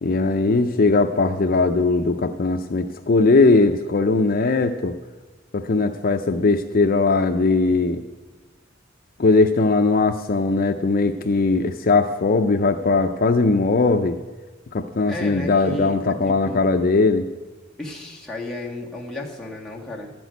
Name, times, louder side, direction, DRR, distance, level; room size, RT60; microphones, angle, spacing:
voice 1, 0.0-5.0 5.5-8.0 9.2-14.2 14.7-17.3, left 3 dB, 50° left, 5 dB, 0.5 m, -19 dB
voice 2, 15.1-16.6 17.8-20.1, left 1 dB, 5° left, -4 dB, 1.8 m, -33 dB
13.0 x 6.2 x 9.2 m, 1.3 s
head